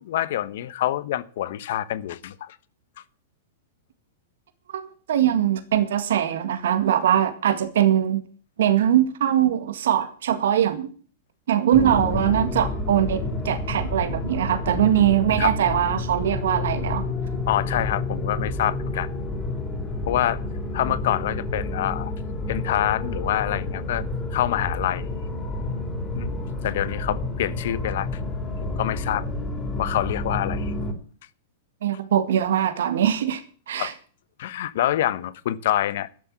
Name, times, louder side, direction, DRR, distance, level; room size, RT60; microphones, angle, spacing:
voice 1, 0.0-2.6 15.4-15.5 17.5-19.1 20.1-20.4 20.7-22.1 22.5-24.0 24.3-25.1 26.1-28.1 28.6-29.2 29.8-30.7 33.8-33.9 34.4-36.1, left 12 dB, 65° left, 1.1 m, -26 dB
voice 2, 4.7-8.2 8.6-10.9 11.5-17.1 31.8-33.4 33.7-33.9, right 10 dB, 75° right, 1.9 m, -22 dB
sound 1, 11.7-30.9, left 2 dB, 20° left, 3.9 m, -29 dB
12.0 x 7.3 x 8.6 m
hypercardioid pair, 130°, 0 cm